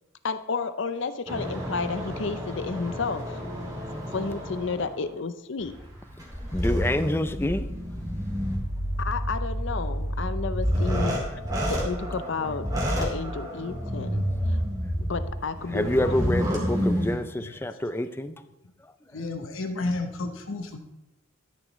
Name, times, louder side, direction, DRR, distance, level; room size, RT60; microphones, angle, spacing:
voice 1, 0.2-3.4 4.1-5.7 9.0-11.2 11.6-12.7 13.0-14.6 15.0-16.2, left 4 dB, 65° left, 12 dB, 0.6 m, -32 dB
sound 1, 1.3-5.0 5.6-17.2, equal, 20° right, 2.4 m, -29 dB
voice 2, 6.5-7.7 15.7-18.4 18.8-18.9, left 1 dB, 10° left, 11 dB, 0.4 m, -27 dB
voice 3, 19.1-20.8, left 2 dB, 80° left, 5 dB, 1.0 m, -31 dB
12.5 x 10.0 x 3.1 m, 0.92 s
head